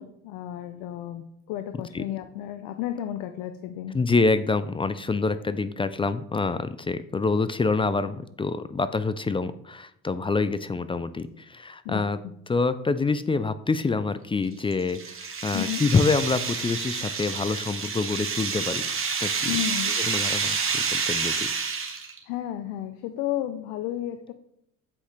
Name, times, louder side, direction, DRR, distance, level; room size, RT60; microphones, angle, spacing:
voice 1, 0.0-3.9 11.8-12.0 15.5-15.8 19.5-19.9 22.3-24.3, left 12 dB, 70° left, 9 dB, 0.6 m, -32 dB
voice 2, 3.9-12.2 12.5-18.8 19.2-19.5 20.0-21.4, left 4 dB, 15° left, 13 dB, 0.4 m, -26 dB
sound 1, 14.4-22.2, right 5 dB, 35° right, 1.5 m, -28 dB
7.9 x 5.1 x 3.3 m, 0.75 s
hypercardioid pair, 65°, 37 cm